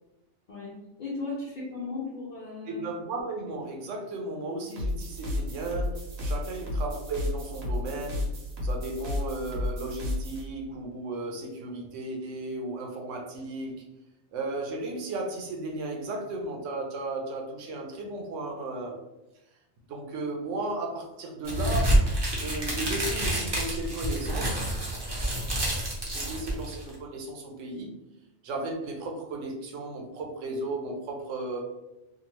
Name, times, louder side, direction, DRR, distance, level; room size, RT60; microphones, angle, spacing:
voice 1, 0.5-2.8, left 3 dB, 50° left, -5 dB, 0.6 m, -36 dB
voice 2, 2.7-8.4 8.6-13.8 14.3-19.0 19.9-22.0 22.3-24.9 26.0-28.0 28.4-31.7, right 2 dB, 70° right, 1 dB, 1.0 m, -35 dB
sound 1, 4.6-10.4, left 1 dB, 85° right, 1.3 m, -32 dB
sound 2, 21.4-26.9, right 1 dB, 25° right, 0.6 m, -28 dB
2.8 x 2.4 x 2.9 m, 0.95 s
omnidirectional pair, 1.4 m